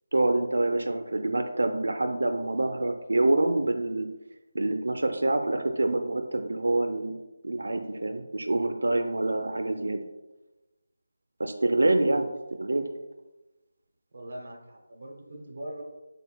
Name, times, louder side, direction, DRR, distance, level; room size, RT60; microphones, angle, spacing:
voice 1, 0.1-4.1 4.5-7.2 7.4-10.0 11.4-12.8, right 2 dB, 90° right, 6 dB, 0.4 m, -26 dB
voice 2, 14.1-15.8, right 1 dB, 35° right, 0 dB, 0.8 m, -41 dB
5.4 x 3.9 x 2.2 m, 1.1 s
figure-of-eight pair, 180°, 0 cm